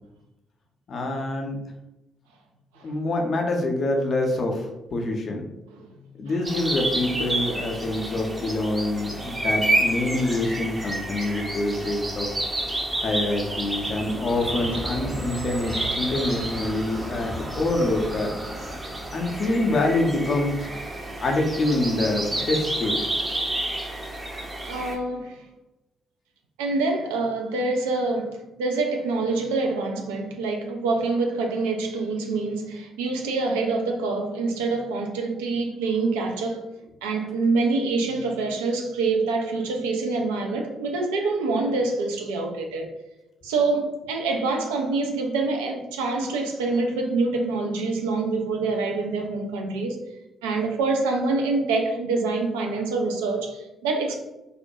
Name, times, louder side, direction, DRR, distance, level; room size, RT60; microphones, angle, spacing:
voice 1, 0.9-1.6 2.8-5.5 6.2-12.3 13.0-18.8 19.1-20.7 21.2-23.0, left 2 dB, 50° left, 0.5 m, -26 dB
sound 1, 6.4-24.9, right 1 dB, 25° right, 0.5 m, -30 dB
sound 2, 11.9-23.4, right 1 dB, 45° right, 0.9 m, -39 dB
voice 2, 24.7-25.5 26.6-36.7 37.0-42.9 43.4-50.0 50.4-54.2, right 3 dB, 75° right, 0.3 m, -26 dB
2.4 x 2.1 x 2.6 m
figure-of-eight pair, 40°, 0 cm